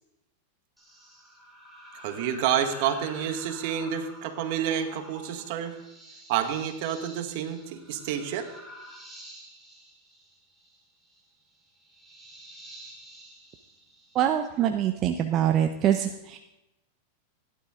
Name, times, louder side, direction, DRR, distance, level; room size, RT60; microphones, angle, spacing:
sound 1, 0.8-14.6, equal, ahead, 4.4 m, -48 dB
voice 1, 2.0-5.8 6.3-8.5, right 9 dB, 60° right, 7 dB, 1.6 m, -29 dB
voice 2, 14.1-16.4, right 10 dB, 35° right, 6 dB, 0.7 m, -24 dB
15.5 x 11.5 x 3.7 m, 0.93 s
hypercardioid pair, 125°, 0 cm